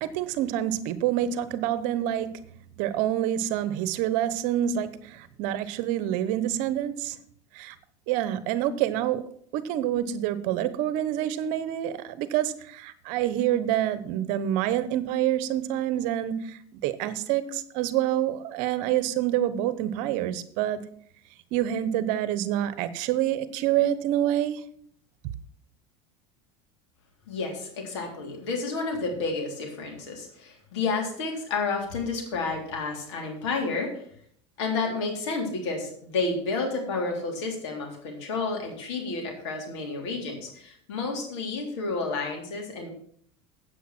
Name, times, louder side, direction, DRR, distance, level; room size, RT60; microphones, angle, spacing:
voice 1, 0.0-2.4 2.8-7.2 7.5-7.7 8.1-9.3 9.5-20.8 21.5-24.6 25.2-25.3, right 11 dB, 65° right, 14 dB, 1.0 m, -27 dB
voice 2, 27.3-34.0 34.6-42.9, left 3 dB, 80° left, 1 dB, 3.5 m, -30 dB
8.6 x 8.0 x 6.0 m, 0.62 s
supercardioid pair, 100°, 15 cm